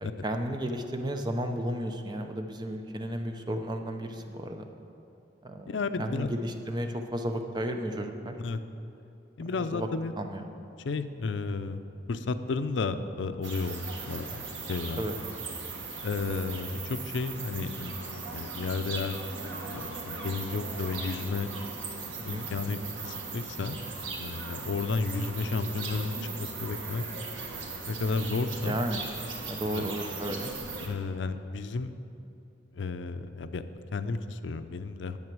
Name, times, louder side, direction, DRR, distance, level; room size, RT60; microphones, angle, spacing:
voice 1, 0.0-4.7 5.4-5.7 6.0-8.3 9.4-9.9 10.2-10.4 15.0-15.1 22.3-22.5 28.6-29.0 29.5-30.5, equal, 20° right, 5 dB, 0.6 m, -33 dB
voice 2, 5.7-6.3 8.4-8.6 9.4-10.1 10.8-11.8 12.1-15.0 16.0-17.9 18.3-19.2 19.7-21.5 22.2-23.8 24.2-27.0 27.9-28.8 29.7-29.9 30.8-32.0 32.7-35.2, left 4 dB, 75° left, 10 dB, 0.5 m, -32 dB
sound 1, 13.4-30.9, right 3 dB, 85° right, 1.6 m, -38 dB
10.5 x 7.9 x 6.1 m, 2.8 s
head